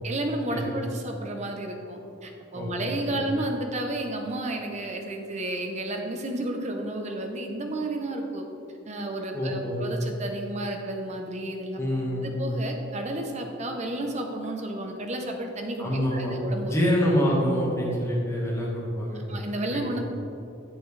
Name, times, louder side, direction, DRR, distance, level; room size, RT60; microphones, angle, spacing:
voice 1, 0.0-8.5 8.9-11.8 12.2-16.7 19.1-20.0, right 1 dB, 35° right, 3 dB, 0.7 m, -32 dB
voice 2, 2.5-3.2 9.3-9.8 11.8-12.3 15.8-19.2 19.7-20.0, equal, 15° left, -5 dB, 1.5 m, -26 dB
7.9 x 7.2 x 3.2 m, 2.7 s
head